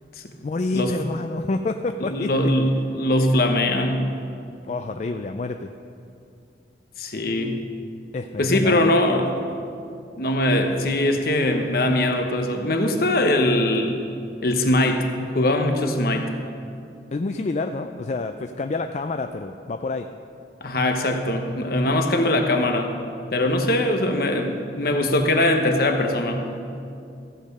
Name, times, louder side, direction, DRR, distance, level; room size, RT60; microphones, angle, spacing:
voice 1, 0.4-2.3 4.7-5.7 8.1-8.9 17.1-20.1, left 3 dB, 40° left, 7 dB, 0.3 m, -28 dB
voice 2, 2.0-4.2 7.0-7.6 8.4-9.3 10.2-14.0 14.4-15.1 15.3-16.3 20.6-22.9 23.3-26.5, left 1 dB, 55° left, 4 dB, 1.1 m, -21 dB
15.0 x 8.7 x 5.4 m, 2.5 s
head